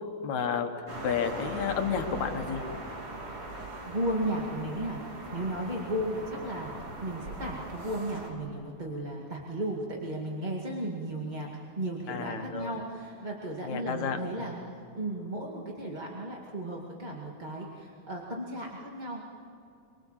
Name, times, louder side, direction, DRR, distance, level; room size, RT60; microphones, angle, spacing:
voice 1, 0.2-0.7 1.0-2.6 12.1-12.7 13.6-14.5, left 7 dB, 70° left, 5 dB, 2.8 m, -31 dB
sound 1, 0.9-8.3, right 1 dB, 45° right, 4.1 m, -40 dB
voice 2, 3.9-14.6 15.0-19.2, right 1 dB, 15° right, -2 dB, 1.8 m, -35 dB
24.5 x 24.0 x 7.4 m, 2.6 s
omnidirectional pair, 3.4 m